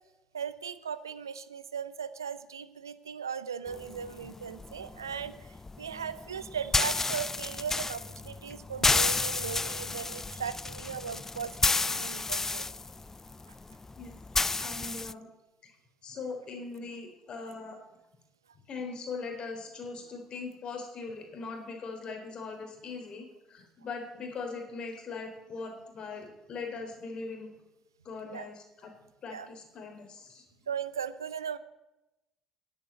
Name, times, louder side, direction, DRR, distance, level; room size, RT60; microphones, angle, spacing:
voice 1, 0.3-12.7 28.2-28.5 29.3-29.5 30.7-31.6, right 7 dB, 80° right, 15 dB, 0.6 m, -38 dB
sound 1, 3.7-15.1, left 3 dB, 20° left, 0.3 m, -31 dB
voice 2, 14.6-15.3 15.6-15.7 16.0-17.8 18.7-27.6 28.0-28.9 29.2-30.4, left 4 dB, 45° left, 4 dB, 3.6 m, -40 dB
10.5 x 8.9 x 8.2 m, 0.99 s
figure-of-eight pair, 50°, 2 cm